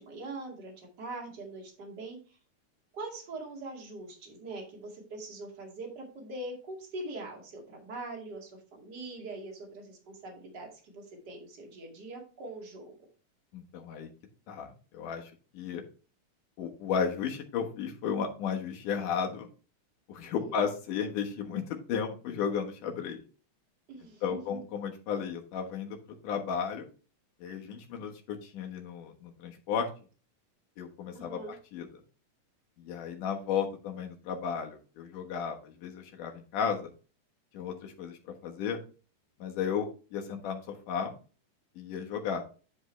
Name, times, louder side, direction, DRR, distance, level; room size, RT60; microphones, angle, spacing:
voice 1, 0.0-2.4 2.9-12.9 20.4-20.6 23.9-24.6 31.1-31.5, right 2 dB, 35° right, 0 dB, 2.6 m, -42 dB
voice 2, 13.5-14.1 14.5-15.8 16.6-19.5 20.1-21.6 21.9-23.2 24.2-26.9 27.4-29.9 30.8-32.0 32.8-36.9 37.5-38.8 39.4-41.1 41.8-42.4, left 7 dB, 80° left, 2 dB, 2.9 m, -34 dB
11.0 x 5.4 x 3.3 m, 0.36 s
omnidirectional pair, 3.6 m